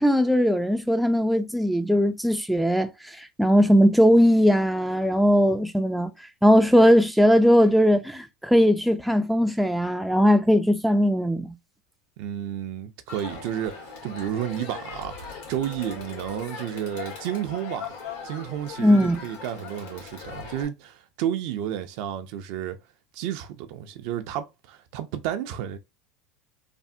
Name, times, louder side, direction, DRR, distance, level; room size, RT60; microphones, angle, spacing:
voice 1, 0.0-2.9 3.2-6.1 6.4-11.5 18.8-19.2, equal, ahead, 0.3 m, -19 dB
voice 2, 12.2-17.9 18.2-22.8 23.1-25.8, right 10 dB, 65° right, 0.5 m, -31 dB
Crowd, 13.1-20.7, left 5 dB, 80° left, 1.5 m, -39 dB
3.3 x 2.0 x 2.6 m
supercardioid pair, 105°, 0 cm